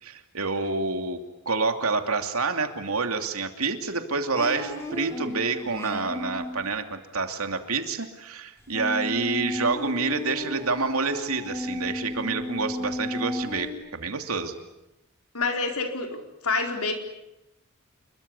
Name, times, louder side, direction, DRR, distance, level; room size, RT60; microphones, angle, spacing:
voice 1, 0.0-14.5, right 4 dB, 85° right, 6 dB, 2.8 m, -28 dB
sound 1, 4.3-6.6 8.7-13.7, left 2 dB, 15° left, 5.6 m, -34 dB
voice 2, 15.3-17.0, left 3 dB, 85° left, 4 dB, 4.6 m, -28 dB
28.0 x 22.5 x 8.4 m, 0.90 s
head